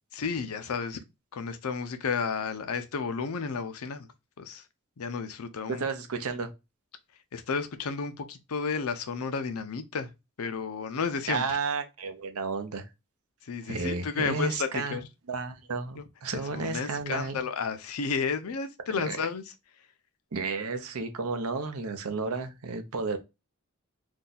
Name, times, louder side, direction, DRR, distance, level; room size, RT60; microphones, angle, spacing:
voice 1, 0.1-1.0 1.3-4.1 4.4-4.6 5.0-5.8 7.3-10.1 10.4-11.6 13.5-15.0 16.0-16.1 16.3-19.4, left 5 dB, 85° left, 0.5 m, -32 dB
voice 2, 5.8-6.5 11.3-12.8 13.6-15.0 15.3-17.4 19.0-19.3 20.3-23.2, right 4 dB, 80° right, 0.6 m, -32 dB
2.7 x 2.3 x 3.9 m
head